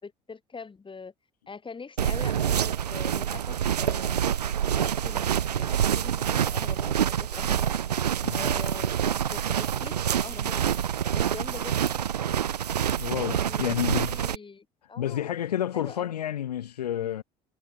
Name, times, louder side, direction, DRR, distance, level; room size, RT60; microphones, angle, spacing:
voice 1, 0.0-1.1 1.5-4.3 4.7-7.7 8.3-10.6 11.1-12.0 13.4-15.4 15.7-16.1, left 5 dB, 25° left, 6.1 m, -42 dB
sound 1, 2.0-14.4, right 9 dB, 85° right, 0.5 m, -27 dB
voice 2, 13.0-14.2 15.0-17.2, left 11 dB, 80° left, 1.1 m, -30 dB
figure-of-eight pair, 60°, 20 cm